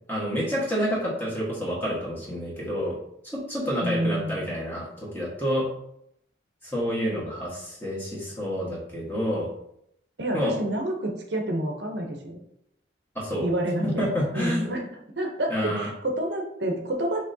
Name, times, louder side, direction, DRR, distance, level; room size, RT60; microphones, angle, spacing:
voice 1, 0.1-2.9 3.2-5.7 6.6-9.5 10.3-10.5 13.1-13.5 13.8-14.7 15.5-15.9, equal, 10° left, -5 dB, 1.3 m, -28 dB
voice 2, 3.8-4.4 10.2-12.4 13.4-13.9 14.3-14.9 15.2-17.3, right 1 dB, 60° right, 2 dB, 0.7 m, -28 dB
5.8 x 3.3 x 2.7 m, 0.75 s
head